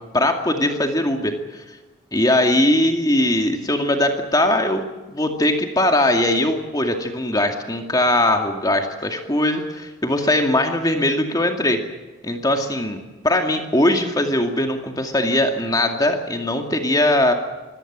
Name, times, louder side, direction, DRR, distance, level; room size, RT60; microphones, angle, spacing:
voice 1, 0.0-1.6 2.1-11.8 12.2-17.3, left 1 dB, 20° left, 4 dB, 2.3 m, -20 dB
24.0 x 18.0 x 7.5 m, 1.2 s
head